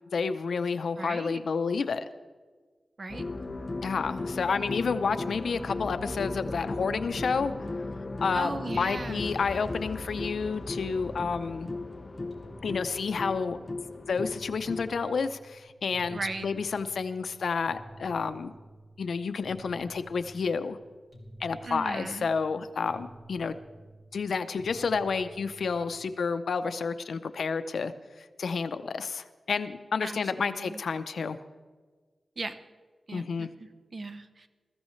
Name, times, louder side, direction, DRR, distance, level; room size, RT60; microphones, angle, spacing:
voice 1, 0.1-2.0 3.8-7.5 8.2-11.7 12.6-13.6 14.1-18.5 19.0-20.8 21.4-23.5 24.1-31.4 33.1-33.5, left 5 dB, 75° left, 10 dB, 0.6 m, -30 dB
voice 2, 1.0-1.4 3.0-3.3 8.3-9.3 16.1-16.4 21.6-22.3 30.0-30.8 32.4-32.6 33.1-34.5, right 3 dB, 40° right, 9 dB, 0.8 m, -37 dB
sound 1, 3.1-15.0, left 2 dB, 25° left, 0.7 m, -36 dB
sound 2, 6.9-26.2, right 1 dB, 15° right, 2.6 m, -51 dB
21.5 x 14.0 x 3.2 m, 1.5 s
wide cardioid pair, 160°, 0 cm